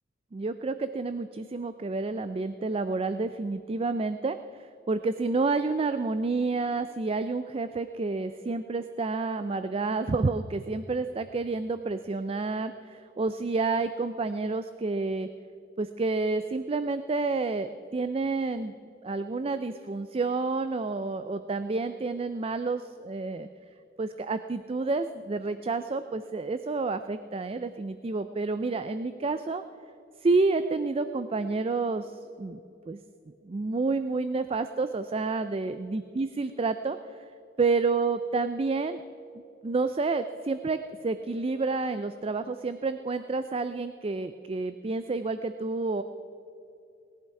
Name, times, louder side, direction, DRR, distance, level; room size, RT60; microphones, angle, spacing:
voice 1, 0.3-15.3 15.8-18.7 19.0-23.5 24.0-29.6 30.2-32.6 32.9-33.0 33.4-37.0 37.6-39.0 39.6-46.0, right 3 dB, 30° right, 11 dB, 0.4 m, -29 dB
18.5 x 11.0 x 4.7 m, 2.6 s
head